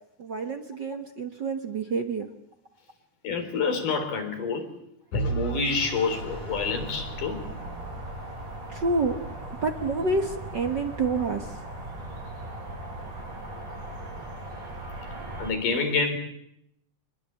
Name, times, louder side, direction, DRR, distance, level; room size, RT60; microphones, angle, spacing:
voice 1, 0.2-2.3 8.7-9.2 9.6-11.6, right 3 dB, 45° right, 6 dB, 1.5 m, -28 dB
voice 2, 3.2-4.7 5.1-7.5 15.4-16.2, left 4 dB, 90° left, 6 dB, 5.4 m, -28 dB
Vehicle / Engine, 5.1-8.1, right 2 dB, 75° left, 4.8 m, -34 dB
sound 1, 6.1-15.5, right 1 dB, 80° right, 8.7 m, -38 dB
26.5 x 21.0 x 8.5 m, 0.75 s
omnidirectional pair, 3.6 m